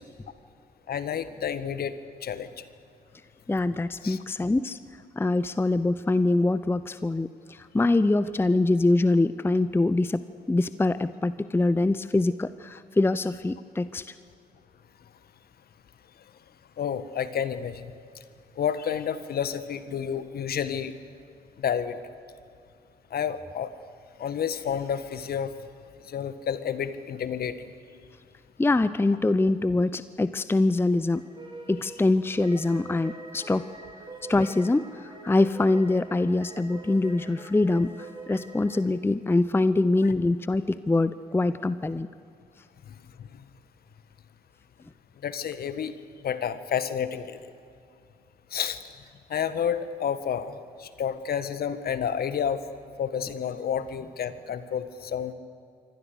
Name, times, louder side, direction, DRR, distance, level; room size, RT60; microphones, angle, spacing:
voice 1, 0.9-1.9 2.2-2.6 4.0-4.2 16.8-17.9 18.6-20.9 21.6-22.0 23.1-23.7 24.2-25.5 26.0-27.6 42.9-43.4 45.2-45.9 46.2-47.5 48.5-48.8 49.3-52.6 53.0-55.3, left 8 dB, 50° left, 12 dB, 1.5 m, -30 dB
voice 2, 3.5-4.8 5.2-14.1 28.6-31.2 31.7-33.7 34.3-42.1, left 2 dB, 10° left, 15 dB, 0.7 m, -24 dB
sound 1, 31.1-38.8, right 2 dB, 25° right, 5.6 m, -44 dB
26.0 x 25.0 x 6.8 m, 2.4 s
figure-of-eight pair, 45°, 20 cm